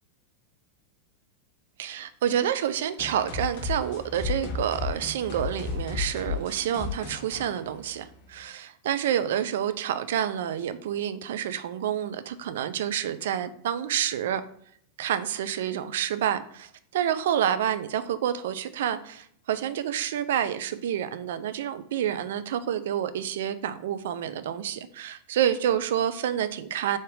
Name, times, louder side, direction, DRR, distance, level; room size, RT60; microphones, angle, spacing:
voice 1, 1.8-14.4 15.0-27.0, right 10 dB, 55° right, 12 dB, 0.3 m, -28 dB
sound 1, 3.0-8.4, left 5 dB, 45° left, 1.5 m, -34 dB
3.8 x 3.7 x 3.7 m, 0.65 s
figure-of-eight pair, 90°, 0 cm